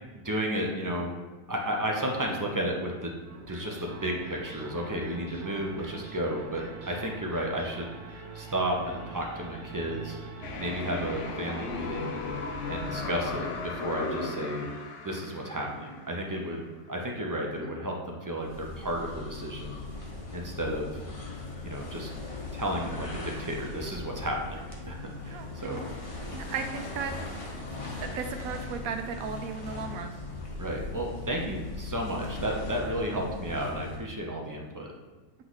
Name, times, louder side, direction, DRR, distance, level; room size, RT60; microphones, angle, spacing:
voice 1, 0.1-1.1 1.5-3.1 3.5-10.2 10.6-12.2 12.7-14.7 15.0-19.8 20.3-20.9 21.6-22.1 22.5-25.8 30.6-34.9, right 1 dB, 25° right, 0 dB, 0.4 m, -33 dB
sound 1, 3.2-15.4, right 4 dB, 70° right, 1.2 m, -46 dB
sound 2, 10.4-16.4, left 4 dB, 65° left, 0.9 m, -36 dB
sound 3, 18.4-34.2, left 3 dB, 30° left, 0.7 m, -39 dB
voice 2, 25.3-25.8 26.3-27.1 28.0-30.2, right 6 dB, 90° right, 6 dB, 1.1 m, -36 dB
7.8 x 3.1 x 4.0 m, 1.3 s
omnidirectional pair, 1.4 m